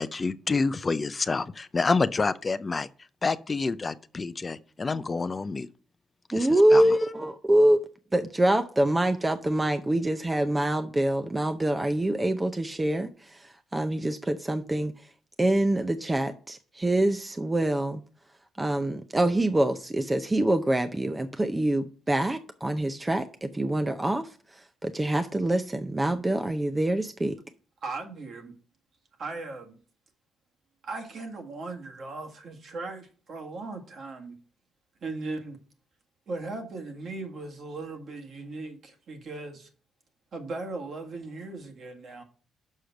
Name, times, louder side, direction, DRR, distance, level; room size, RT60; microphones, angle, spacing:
voice 1, 0.0-2.9 3.2-5.7 6.3-6.8, left 4 dB, 30° left, 0.4 m, -28 dB
voice 2, 6.3-7.8 8.1-15.1 15.4-18.0 18.6-27.4, right 1 dB, 15° right, 0.6 m, -25 dB
voice 3, 27.8-28.5 29.2-29.8 30.8-34.4 35.0-35.6 36.3-39.7 40.3-42.2, right 3 dB, 55° right, 1.7 m, -38 dB
6.4 x 5.0 x 5.8 m
cardioid pair, 90°, 0 cm